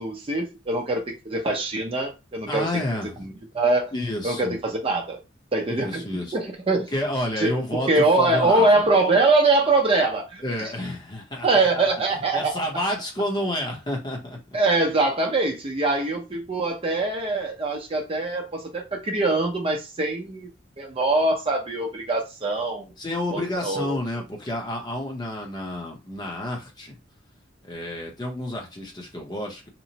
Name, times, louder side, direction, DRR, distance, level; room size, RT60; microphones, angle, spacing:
voice 1, 0.0-2.7 3.2-3.9 4.2-5.2 5.5-6.0 6.3-6.9 7.4-10.7 11.4-12.5 14.5-20.5 20.8-22.9 23.3-24.0, right 2 dB, 30° right, 0.6 m, -23 dB
voice 2, 2.5-3.3 3.9-4.6 5.7-6.4 6.9-8.9 10.4-11.8 12.1-14.4 23.0-26.9 27.6-29.7, left 1 dB, 25° left, 0.7 m, -30 dB
2.9 x 2.0 x 2.8 m
head